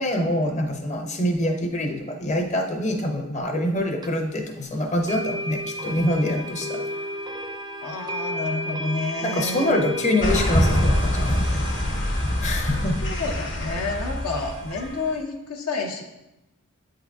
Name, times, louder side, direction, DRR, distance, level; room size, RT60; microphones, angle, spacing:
voice 1, 0.0-7.0 9.2-11.7 12.4-13.0, left 1 dB, 30° left, 3 dB, 0.7 m, -25 dB
sound 1, 4.0-4.1 5.1-15.1, equal, 20° right, 0.3 m, -34 dB
voice 2, 7.8-9.8 13.0-16.0, left 3 dB, 70° left, 1 dB, 0.7 m, -29 dB
sound 2, 10.2-15.0, left 1 dB, 55° left, 1.2 m, -24 dB
8.3 x 3.8 x 3.4 m, 0.96 s
head